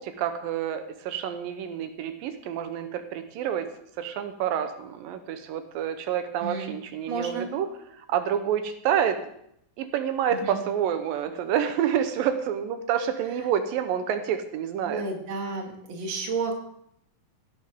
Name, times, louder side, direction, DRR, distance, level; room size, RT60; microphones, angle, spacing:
voice 1, 0.0-3.7 4.0-9.2 9.8-15.0, right 9 dB, 90° right, 9 dB, 2.6 m, -28 dB
voice 2, 6.4-6.7 7.1-7.5 10.4-10.6 14.8-16.5, right 4 dB, 40° right, 2 dB, 2.2 m, -31 dB
16.5 x 10.0 x 3.6 m, 0.72 s
omnidirectional pair, 4.0 m